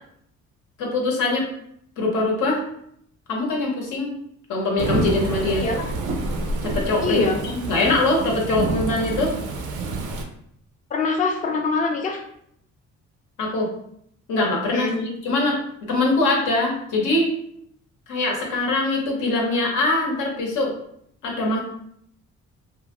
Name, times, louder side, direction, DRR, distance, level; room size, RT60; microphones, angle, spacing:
voice 1, 0.8-1.5 2.0-2.6 3.3-4.2 4.5-5.7 6.6-9.3 13.4-13.7 14.3-15.6 15.9-17.3 18.1-20.7 21.2-21.6, left 2 dB, 80° left, -1 dB, 0.9 m, -22 dB
Thunderstorm / Rain, 4.8-10.2, right 3 dB, 85° right, 0.5 m, -28 dB
voice 2, 5.5-5.8 7.0-7.4 10.9-12.2 14.7-15.0, left 3 dB, 25° left, 2 dB, 0.4 m, -23 dB
2.4 x 2.1 x 2.9 m, 0.70 s
cardioid pair, 90°, 30 cm